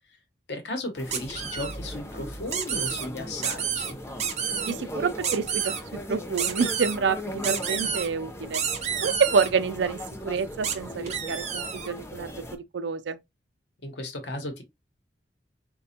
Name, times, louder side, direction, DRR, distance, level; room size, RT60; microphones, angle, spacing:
voice 1, 0.5-4.0 13.8-14.6, left 1 dB, 75° left, 0.9 m, -35 dB
sound 1, 0.9-12.6, left 1 dB, 15° left, 0.5 m, -39 dB
sound 2, 1.1-1.8 2.5-3.1 3.4-3.9 4.2-4.7 5.2-5.8 6.4-7.0 7.4-8.1 8.5-9.5 10.6-10.8 11.1-11.9, right 7 dB, 40° right, 0.6 m, -29 dB
sound 3, 1.3-4.1, right 1 dB, 45° left, 0.9 m, -45 dB
voice 2, 4.6-8.6 9.0-13.2, right 5 dB, 90° right, 0.4 m, -28 dB
4.1 x 2.2 x 2.7 m
head